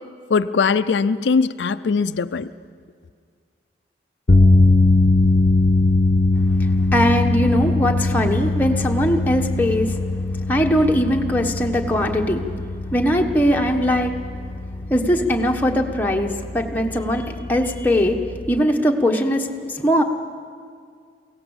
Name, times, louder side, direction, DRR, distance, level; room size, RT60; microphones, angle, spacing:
voice 1, 0.3-2.5, left 5 dB, 85° left, 12 dB, 0.5 m, -20 dB
sound 1, 4.3-18.6, left 2 dB, 45° left, 0.9 m, -21 dB
voice 2, 6.6-10.0 10.5-12.5 12.9-14.1 14.9-18.2 18.5-20.0, equal, 10° left, 1 dB, 1.2 m, -20 dB
23.0 x 17.0 x 7.2 m, 2.1 s
head